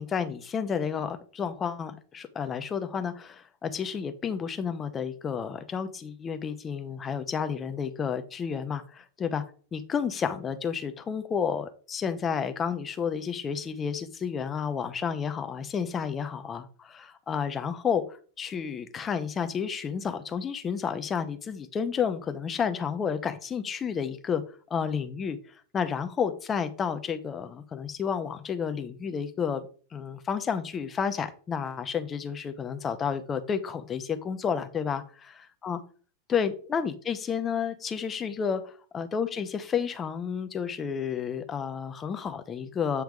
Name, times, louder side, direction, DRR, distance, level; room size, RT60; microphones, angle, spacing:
voice 1, 0.0-9.4 9.7-18.0 18.4-24.4 24.7-25.4 25.7-29.7 29.9-35.0 35.6-35.8 36.3-43.0, left 7 dB, 20° left, 9 dB, 0.8 m, -31 dB
8.2 x 3.4 x 4.9 m, 0.41 s
figure-of-eight pair, 90°, 0 cm